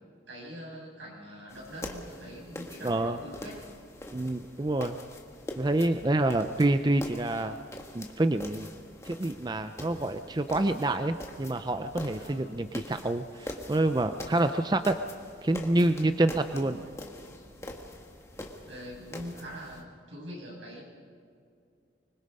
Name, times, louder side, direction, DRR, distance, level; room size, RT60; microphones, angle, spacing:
voice 1, 0.3-3.6 12.1-12.6 16.6-16.9 18.7-20.8, equal, 80° right, -3 dB, 7.4 m, -43 dB
sound 1, 1.5-19.8, left 1 dB, 15° left, 1.6 m, -44 dB
voice 2, 2.8-3.2 4.1-5.0 5.6-7.6 7.9-8.7 9.0-15.0 15.4-16.8, right 2 dB, 20° right, 9 dB, 0.5 m, -27 dB
25.0 x 21.5 x 5.5 m, 2.5 s
head